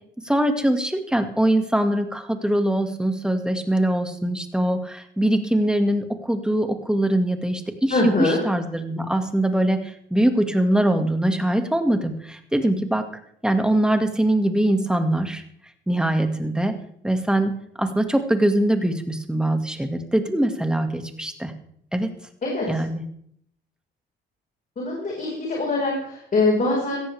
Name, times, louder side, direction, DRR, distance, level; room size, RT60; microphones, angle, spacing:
voice 1, 0.3-13.0 13.4-15.4 15.9-16.7 17.0-17.5 17.8-21.5 21.9-22.1 22.7-23.0, right 1 dB, 5° right, 6 dB, 1.9 m, -22 dB
voice 2, 7.9-8.4 22.4-22.7 24.8-27.0, left 2 dB, 40° left, -2 dB, 4.9 m, -23 dB
17.0 x 14.0 x 3.5 m, 0.67 s
cardioid pair, 90°, 20 cm